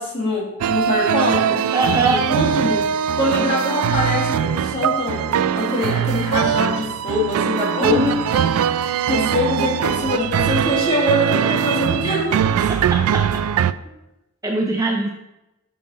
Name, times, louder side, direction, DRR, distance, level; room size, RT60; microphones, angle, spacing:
voice 1, 0.0-1.7 2.3-2.8 3.2-8.0 8.3-12.5, left 1 dB, 25° left, -4 dB, 2.0 m, -23 dB
sound 1, 0.6-13.7, right 8 dB, 75° right, 0.3 m, -21 dB
voice 2, 1.7-2.3 7.8-8.3 12.1-12.2 12.7-13.3 14.4-15.1, right 1 dB, 15° right, 2 dB, 0.4 m, -22 dB
5.5 x 5.4 x 3.8 m, 0.92 s
head